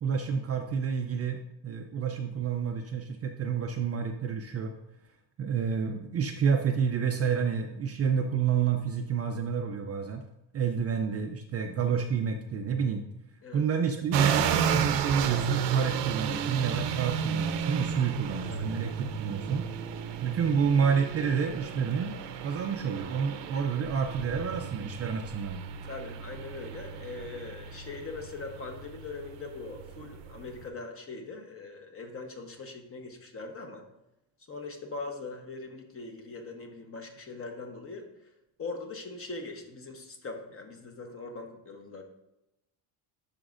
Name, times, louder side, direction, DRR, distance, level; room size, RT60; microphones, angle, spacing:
voice 1, 0.0-4.7 5.4-10.2 10.5-13.0 13.5-19.6 20.2-22.2 22.4-25.6, right 6 dB, 35° right, 4 dB, 0.4 m, -29 dB
sound 1, 14.1-30.6, right 7 dB, 65° right, 0.7 m, -32 dB
voice 2, 25.8-33.9 34.5-38.1 38.6-42.0, left 3 dB, 30° left, 4 dB, 1.0 m, -41 dB
11.0 x 5.1 x 2.5 m, 0.88 s
cardioid pair, 135°, 45 cm